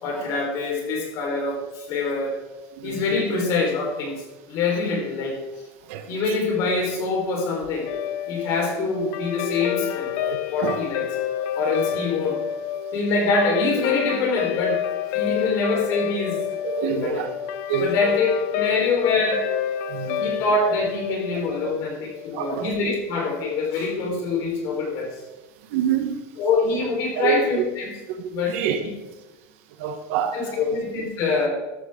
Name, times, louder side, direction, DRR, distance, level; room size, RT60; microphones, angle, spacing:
voice 1, 0.0-2.3 2.8-4.1 4.5-5.4 6.1-7.9 8.3-10.1 10.5-11.1 11.5-12.4 12.9-14.8 15.1-16.4 16.9-17.2 17.8-19.5 20.2-25.1 26.4-27.9 28.3-28.6 30.3-31.5, left 3 dB, 45° left, 0 dB, 4.5 m, -24 dB
voice 2, 2.8-3.2 5.9-6.4 10.2-10.8 16.6-17.3 17.7-17.9 18.8-18.9 19.9-20.3 22.3-22.7 25.6-26.2 27.1-27.3 28.1-28.8 29.8-30.8, right 9 dB, 60° right, 7 dB, 1.4 m, -28 dB
Guitar, 7.8-22.4, left 10 dB, 65° left, 0.9 m, -29 dB
15.0 x 12.0 x 3.8 m, 1.1 s
cardioid pair, 180°, 8 cm